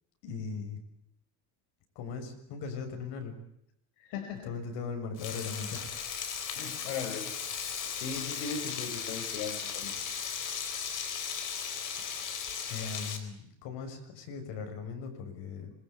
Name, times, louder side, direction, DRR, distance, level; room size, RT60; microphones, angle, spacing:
voice 1, 0.2-0.8 2.0-3.3 4.5-5.9 12.7-15.7, left 5 dB, 60° left, 5 dB, 6.8 m, -39 dB
voice 2, 4.0-4.5 6.6-7.3 7.9-10.0, left 6 dB, 80° left, 4 dB, 4.7 m, -38 dB
Frying (food), 5.2-13.2, left 7 dB, 40° left, 4.3 m, -36 dB
26.5 x 22.0 x 8.4 m, 0.77 s
cardioid pair, 145°, 47 cm